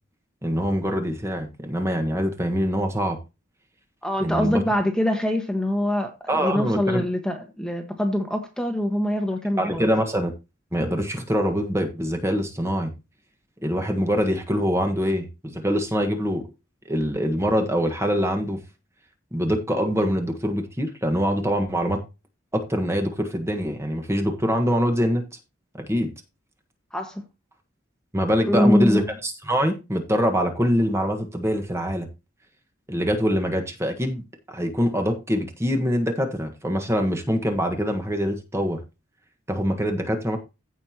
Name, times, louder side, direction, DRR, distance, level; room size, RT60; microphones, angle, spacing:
voice 1, 0.4-3.2 4.2-4.6 6.3-7.1 9.6-10.3 10.7-12.9 13.6-16.4 16.8-18.6 19.3-22.0 22.5-25.2 25.7-26.1 28.1-32.1 32.9-34.2 34.5-38.8 39.5-40.4, equal, 15° right, 1.4 m, -24 dB
voice 2, 4.0-9.9 26.9-27.2 28.4-29.0, left 1 dB, 5° left, 1.3 m, -24 dB
15.5 x 5.5 x 2.9 m
head